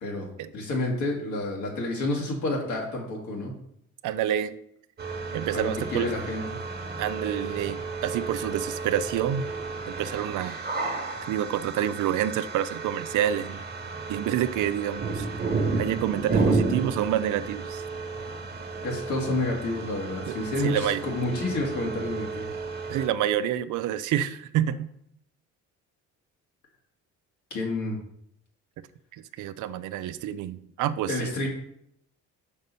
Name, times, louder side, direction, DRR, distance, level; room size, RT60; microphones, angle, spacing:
voice 1, 0.0-3.5 5.5-6.4 18.8-22.5 27.5-28.0 31.1-31.5, left 2 dB, 75° left, -1 dB, 1.9 m, -29 dB
voice 2, 4.0-4.6 5.3-6.1 7.0-9.4 10.0-10.6 11.3-13.7 14.1-15.3 15.8-17.8 20.3-21.0 22.9-24.9 29.1-31.3, right 11 dB, 80° right, 13 dB, 0.5 m, -28 dB
sound 1, 5.0-23.1, right 4 dB, 30° right, 1.2 m, -32 dB
5.3 x 4.1 x 5.3 m, 0.72 s
cardioid pair, 90°, 30 cm